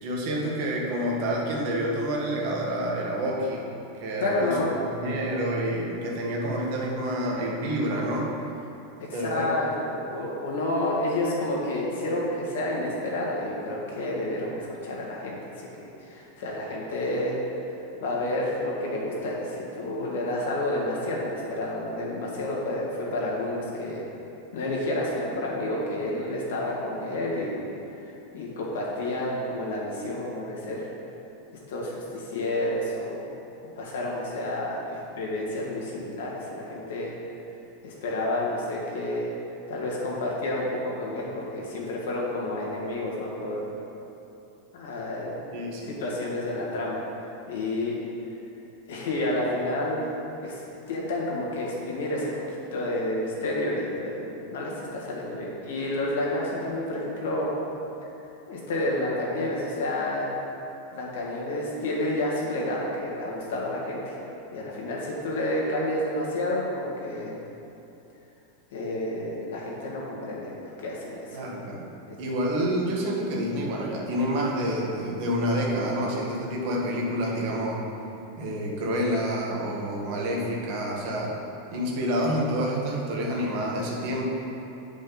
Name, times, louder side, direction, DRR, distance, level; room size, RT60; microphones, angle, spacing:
voice 1, 0.0-3.6 4.0-4.5 4.9-8.3 9.1-9.5 45.5-46.0 71.3-71.9 72.2-77.8 78.4-81.3 81.7-84.3, equal, 45° right, -2 dB, 1.3 m, -28 dB
voice 2, 4.2-4.7 9.1-17.4 18.0-24.1 24.5-27.6 27.9-30.9 31.7-33.3 33.6-37.1 37.8-39.3 39.7-43.8 44.7-48.0 48.9-50.1 50.4-50.6 50.9-52.4 52.7-57.5 58.5-60.3 60.9-64.2 64.5-67.4 68.7-71.4, left 1 dB, 70° left, -4 dB, 1.7 m, -30 dB
8.6 x 5.1 x 3.9 m, 2.8 s
supercardioid pair, 170°, 0 cm